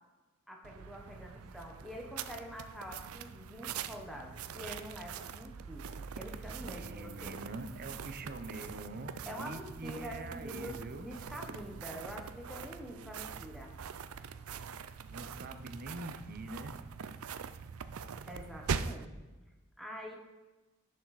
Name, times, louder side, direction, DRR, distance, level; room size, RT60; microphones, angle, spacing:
voice 1, 0.5-7.4 9.3-13.7 18.3-19.0 19.8-20.2, equal, ahead, 0 dB, 1.1 m, -46 dB
sound 1, 0.6-19.1, right 6 dB, 90° right, 0.5 m, -43 dB
voice 2, 6.6-11.1 15.0-16.7, right 2 dB, 45° right, 8 dB, 0.8 m, -44 dB
11.0 x 6.5 x 4.1 m, 1.2 s
head